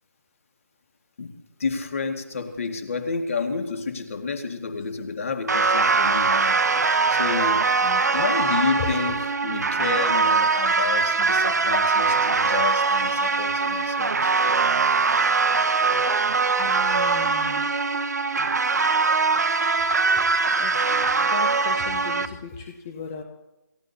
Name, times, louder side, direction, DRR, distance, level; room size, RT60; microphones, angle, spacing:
voice 1, 1.6-6.6 6.9-14.3, left 4 dB, 45° left, 5 dB, 2.1 m, -30 dB
sound 1, 5.5-22.3, right 4 dB, 60° right, 0.9 m, -22 dB
voice 2, 16.6-17.6 20.6-20.8 21.3-23.2, left 5 dB, 10° left, 4 dB, 0.4 m, -36 dB
28.5 x 15.0 x 2.8 m, 0.98 s
figure-of-eight pair, 170°, 10 cm